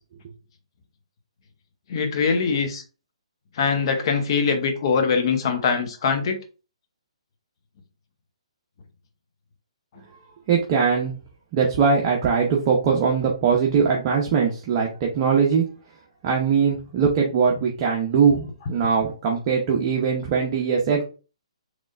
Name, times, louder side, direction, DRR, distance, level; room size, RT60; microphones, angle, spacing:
voice 1, 1.9-2.8 3.6-6.4, left 5 dB, 50° left, 0.9 m, -22 dB
voice 2, 10.5-11.1 11.5-15.6 16.2-21.0, right 6 dB, 35° right, 0.8 m, -21 dB
3.9 x 3.2 x 2.5 m
hypercardioid pair, 140°, 3 cm